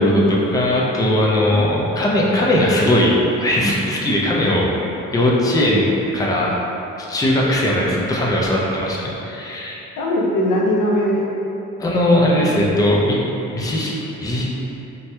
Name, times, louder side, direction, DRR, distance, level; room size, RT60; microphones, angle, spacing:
voice 1, 0.0-4.7 5.1-6.5 7.1-9.8 11.8-13.2 13.5-14.5, left 1 dB, 10° left, -4 dB, 0.4 m, -19 dB
voice 2, 10.0-11.3 12.1-12.5, left 1 dB, 90° left, -2 dB, 0.6 m, -20 dB
2.8 x 2.2 x 3.2 m, 2.9 s
cardioid pair, 90°, 30 cm